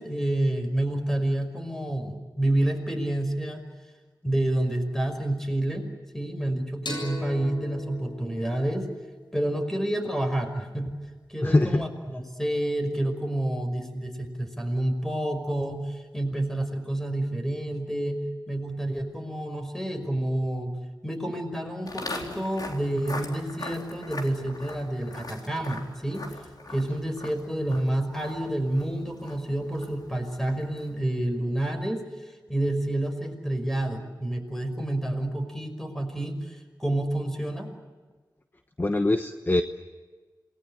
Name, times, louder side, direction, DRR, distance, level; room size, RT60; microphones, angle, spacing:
voice 1, 0.0-3.6 4.2-8.9 9.3-11.0 11.3-20.8 21.0-26.3 26.7-37.7, right 1 dB, 5° left, 5 dB, 5.5 m, -29 dB
sound 1, 6.9-10.2, left 2 dB, 80° left, 7.5 m, -40 dB
voice 2, 11.4-11.9 38.8-39.6, left 2 dB, 25° left, 8 dB, 1.1 m, -22 dB
Walk footsteps, 21.9-31.1, left 2 dB, 60° left, 4.0 m, -41 dB
28.0 x 20.5 x 8.8 m, 1.3 s
wide cardioid pair, 75°, 8 cm